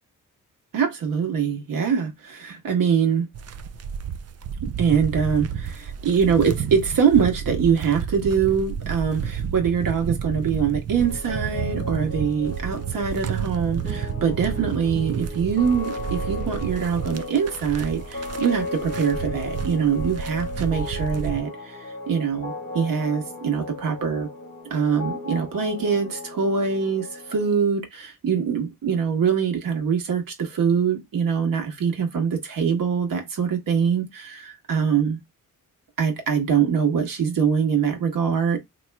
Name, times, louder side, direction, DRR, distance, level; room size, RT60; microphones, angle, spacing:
voice 1, 0.7-3.3 4.8-24.3 24.7-35.2 36.0-38.6, right 6 dB, 80° right, 1.4 m, -23 dB
sound 1, 3.3-21.4, right 7 dB, 50° right, 0.5 m, -31 dB
sound 2, 10.9-27.6, left 2 dB, 40° left, 2.3 m, -36 dB
4.2 x 2.9 x 2.2 m
wide cardioid pair, 150°, 33 cm